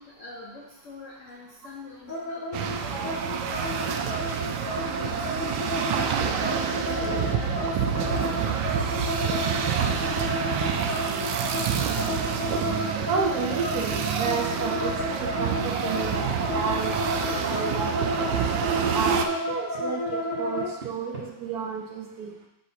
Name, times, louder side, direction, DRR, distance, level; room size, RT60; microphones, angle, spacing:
voice 1, 0.0-4.5 4.8-5.3 5.9-9.5, left 3 dB, 50° left, -4 dB, 1.1 m, -44 dB
sound 1, 2.1-20.7, left 1 dB, 10° left, 1.4 m, -31 dB
sound 2, 2.5-19.3, right 8 dB, 90° right, 1.3 m, -28 dB
voice 2, 13.1-17.0 17.4-17.9 18.2-18.3 18.9-22.3, right 5 dB, 60° right, -1 dB, 1.4 m, -31 dB
sound 3, 17.5-17.6 17.9-18.3 18.6-21.3, right 4 dB, 35° right, 1.1 m, -42 dB
6.7 x 6.1 x 2.8 m, 0.86 s
omnidirectional pair, 2.0 m